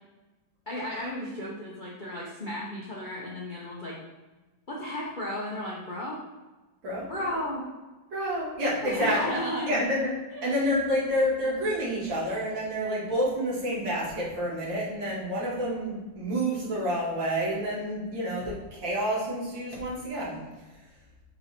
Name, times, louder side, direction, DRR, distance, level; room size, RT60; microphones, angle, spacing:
voice 1, 0.7-4.0 4.7-6.2 7.1-7.6 8.8-9.9 10.3-10.5, left 1 dB, 55° left, -4 dB, 0.5 m, -33 dB
voice 2, 8.1-9.4 9.7-10.0 10.4-20.4, equal, 70° right, -6 dB, 2.6 m, -28 dB
5.5 x 4.1 x 4.2 m, 1.2 s
omnidirectional pair, 2.2 m